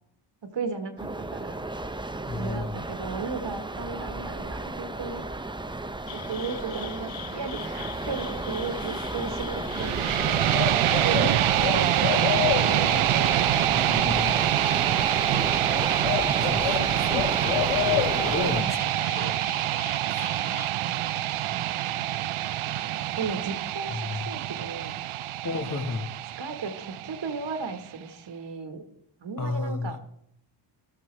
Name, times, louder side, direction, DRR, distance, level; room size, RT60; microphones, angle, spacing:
voice 1, 0.4-1.7 2.3-5.2 6.1-10.2 10.7-14.3 18.6-18.7 20.3-22.5 22.8-25.0 25.7-25.8 26.4-28.8 29.2-30.0, right 4 dB, 60° right, 6 dB, 1.5 m, -36 dB
sound 1, 1.0-18.6, right 2 dB, 10° right, 0.6 m, -33 dB
voice 2, 2.2-2.8 8.9-9.1 13.7-14.4 15.3-15.6 16.3-19.4 20.1-20.2 23.9-24.3 25.4-26.1 29.4-30.0, left 3 dB, 40° left, 7 dB, 1.5 m, -33 dB
sound 2, 6.1-20.7, left 14 dB, 75° left, 0.6 m, -33 dB
sound 3, 9.7-27.7, right 13 dB, 80° right, 0.6 m, -26 dB
14.0 x 13.0 x 3.3 m, 0.72 s
cardioid pair, 80°, 49 cm